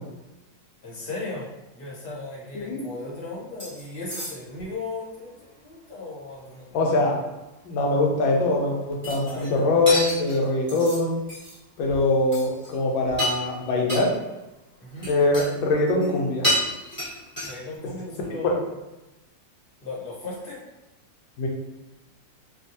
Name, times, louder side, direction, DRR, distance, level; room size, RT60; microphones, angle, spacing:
voice 1, 0.8-7.0 9.2-9.6 14.8-15.1 17.4-18.7 19.8-20.6, left 2 dB, 40° left, -5 dB, 0.9 m, -36 dB
sound 1, 3.6-3.8 4.1-4.6 9.0-9.6 9.9-11.0 11.3-11.6 11.9-12.0 12.3-12.7 13.0-13.5 13.9-14.0 15.0-15.5 15.8-16.2 16.4-17.7, equal, 5° left, 0.9 m, -29 dB
voice 2, 6.7-7.2 7.6-11.2 11.8-14.1 15.1-16.5 21.4-21.5, left 2 dB, 85° left, -1 dB, 1.5 m, -23 dB
3.4 x 2.4 x 2.6 m, 1.0 s
omnidirectional pair, 2.1 m